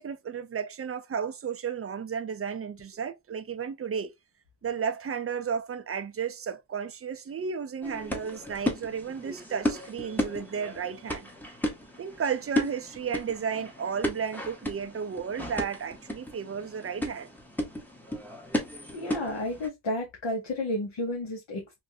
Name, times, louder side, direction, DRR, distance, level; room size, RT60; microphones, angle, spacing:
voice 1, 0.0-4.1 4.6-11.3 12.0-17.3, right 6 dB, 35° right, 0.4 m, -33 dB
sound 1, 7.8-19.7, left 1 dB, 5° left, 0.7 m, -34 dB
voice 2, 18.9-21.8, left 1 dB, 80° left, 1.0 m, -32 dB
3.1 x 2.5 x 2.6 m
wide cardioid pair, 95°, 46 cm